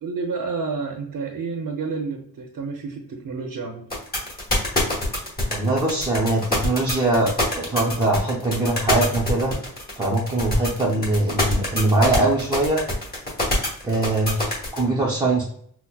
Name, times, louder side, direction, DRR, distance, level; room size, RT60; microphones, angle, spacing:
voice 1, 0.0-3.9, right 4 dB, 65° right, 1 dB, 0.7 m, -30 dB
sound 1, 3.9-14.8, left 1 dB, 25° left, 1.1 m, -24 dB
voice 2, 5.5-9.5 10.0-12.8 13.8-15.4, right 2 dB, 10° right, -5 dB, 0.5 m, -22 dB
5.7 x 2.1 x 2.2 m, 0.65 s
wide cardioid pair, 165°, 37 cm